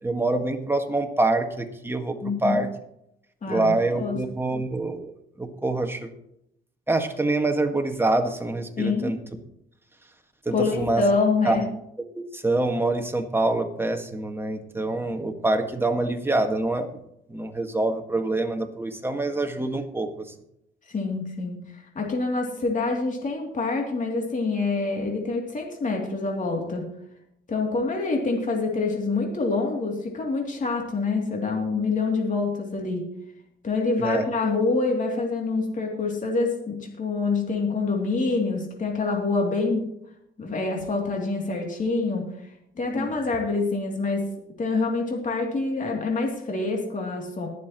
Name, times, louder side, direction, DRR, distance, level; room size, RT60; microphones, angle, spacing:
voice 1, 0.0-2.7 3.5-5.1 5.4-6.1 6.9-9.2 10.4-11.0 11.4-11.6 12.1-17.0 17.3-20.1 34.0-34.2 42.9-43.1, right 2 dB, 10° right, 5 dB, 1.7 m, -25 dB
voice 2, 2.2-2.6 3.4-4.2 8.8-9.1 10.5-11.6 20.9-26.8 27.5-33.0 33.6-39.8 40.4-42.3 42.8-44.2 44.6-47.5, left 3 dB, 40° left, 0 dB, 2.8 m, -26 dB
21.0 x 7.3 x 3.0 m, 0.77 s
cardioid pair, 90°, 20 cm